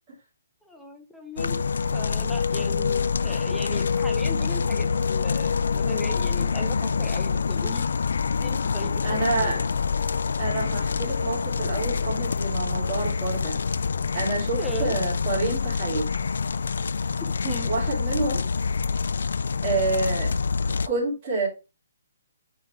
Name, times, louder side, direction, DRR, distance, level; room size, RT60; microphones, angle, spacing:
voice 1, 0.6-1.6 1.9-7.9 8.4-9.6 14.6-14.9 17.4-17.7, equal, ahead, 2 dB, 0.7 m, -37 dB
sound 1, 1.4-20.9, left 5 dB, 70° left, 0.4 m, -26 dB
voice 2, 9.0-9.6 10.4-13.6 14.1-16.1 17.7-18.4 19.6-20.3 20.8-21.5, right 3 dB, 25° right, -8 dB, 3.1 m, -28 dB
9.3 x 3.7 x 3.4 m, 0.27 s
hypercardioid pair, 175°, 0 cm